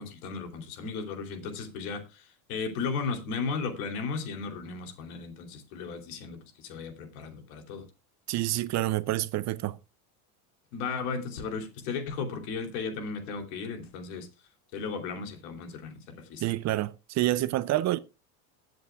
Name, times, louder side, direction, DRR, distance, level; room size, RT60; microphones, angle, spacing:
voice 1, 0.0-7.8 10.7-14.3 14.7-16.4, left 5 dB, 75° left, 3.1 m, -35 dB
voice 2, 8.3-9.8 16.4-18.0, right 16 dB, 40° right, 0.5 m, -28 dB
20.5 x 7.8 x 2.3 m
supercardioid pair, 120°, 45 cm